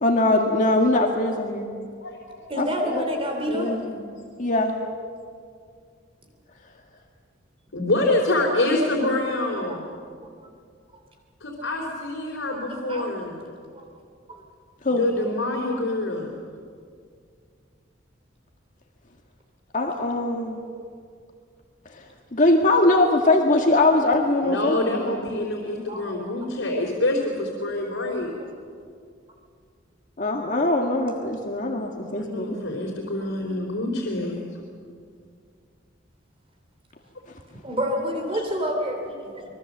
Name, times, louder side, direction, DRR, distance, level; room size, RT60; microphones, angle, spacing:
voice 1, 0.0-1.7 2.6-3.0 4.4-4.8 14.8-15.1 19.7-20.6 22.3-25.1 30.2-32.6, left 2 dB, 40° left, 1 dB, 1.9 m, -21 dB
voice 2, 2.0-2.6 3.5-4.0 7.7-9.8 11.4-13.4 14.9-16.3 24.4-28.3 32.1-34.4, left 2 dB, 85° left, -2 dB, 3.5 m, -26 dB
voice 3, 2.5-3.8 9.7-9.8 12.9-13.1 13.7-13.8 14.3-14.4 25.9-26.3 28.4-28.5 37.6-39.4, equal, 30° right, 3 dB, 2.9 m, -28 dB
25.0 x 22.5 x 7.4 m, 2.2 s
head